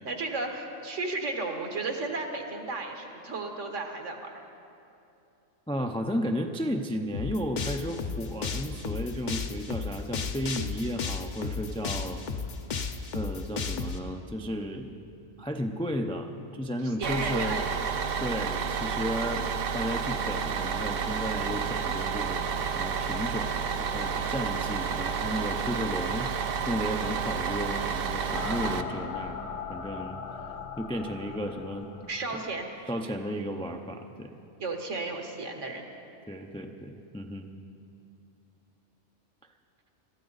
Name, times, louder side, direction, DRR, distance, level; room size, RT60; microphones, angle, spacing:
voice 1, 0.0-4.3 17.0-17.9 18.3-18.4 32.1-32.7 34.6-35.9, right 3 dB, 70° right, 3 dB, 1.7 m, -34 dB
voice 2, 5.7-12.2 13.1-14.9 15.4-17.6 18.2-19.5 19.7-32.1 32.9-34.4 36.3-37.5, equal, 10° left, 4 dB, 0.3 m, -34 dB
sound 1, 7.1-14.0, left 5 dB, 45° left, 0.7 m, -33 dB
Bus, 17.0-28.8, right 6 dB, 55° right, 0.8 m, -30 dB
sound 2, 28.3-32.9, left 6 dB, 60° left, 1.0 m, -39 dB
22.0 x 14.0 x 4.0 m, 2.7 s
omnidirectional pair, 1.3 m